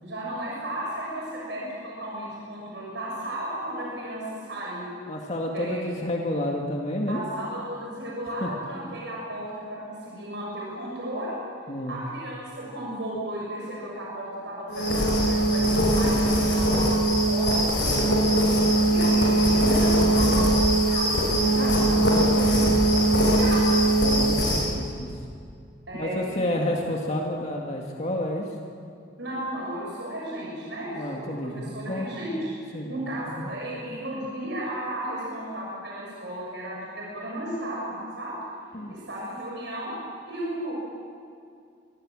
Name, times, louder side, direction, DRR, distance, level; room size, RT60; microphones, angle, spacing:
voice 1, 0.0-5.0 5.5-5.8 7.1-11.4 11.9-17.7 18.8-23.8 25.9-26.6 29.2-32.5 32.9-38.3 38.9-39.9 40.2-40.7, right 1 dB, 70° right, -4 dB, 6.5 m, -34 dB
voice 2, 5.1-7.2 8.4-8.5 11.7-12.0 17.8-18.2 21.5-21.8 22.2-22.6 24.0-25.1 25.9-28.5 30.9-32.1 32.7-32.9 33.2-33.5 38.7-38.9, left 1 dB, 40° left, 0 dB, 2.1 m, -30 dB
sound 1, 14.7-24.7, right 1 dB, 65° left, 7.4 m, -21 dB
26.0 x 23.0 x 7.6 m, 2.4 s
head